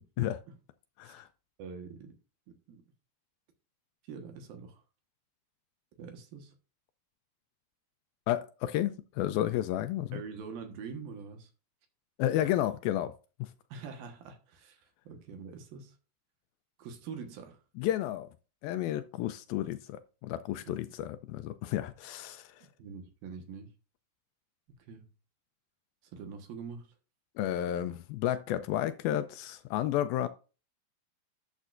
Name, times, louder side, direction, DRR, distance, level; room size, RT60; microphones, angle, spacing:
voice 1, 0.2-0.6 1.0-1.2 1.6-2.2 2.5-2.8 4.0-4.8 6.0-6.5 10.1-11.5 13.7-15.9 16.8-17.6 20.7-20.8 22.6-23.7 24.7-25.1 26.1-26.9, right 5 dB, 70° right, 3.0 m, -45 dB
voice 2, 8.3-10.2 12.2-13.1 13.4-13.5 17.8-18.3 18.6-22.7 27.4-30.3, left 12 dB, 80° left, 2.2 m, -32 dB
12.5 x 7.4 x 2.5 m
omnidirectional pair, 4.6 m